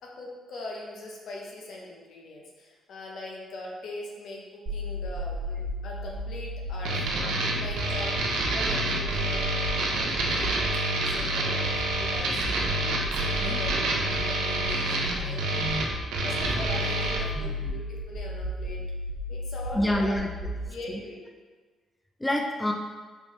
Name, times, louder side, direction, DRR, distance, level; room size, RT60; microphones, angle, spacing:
voice 1, 0.0-7.2 7.6-8.1 8.4-9.5 10.0-10.6 11.1-13.8 14.0-15.7 16.2-18.8 19.3-20.1 20.7-21.2, left 2 dB, 70° left, -2 dB, 0.8 m, -41 dB
sound 1, 4.7-20.7, left 1 dB, 65° right, 1.1 m, -34 dB
sound 2, 6.8-17.2, right 2 dB, 85° right, 0.6 m, -28 dB
voice 2, 15.1-15.9 17.4-17.8 19.7-20.5 20.9-21.0 22.2-22.7, left 1 dB, 10° left, 2 dB, 0.3 m, -29 dB
4.3 x 2.6 x 3.1 m, 1.4 s
cardioid pair, 90°, 0 cm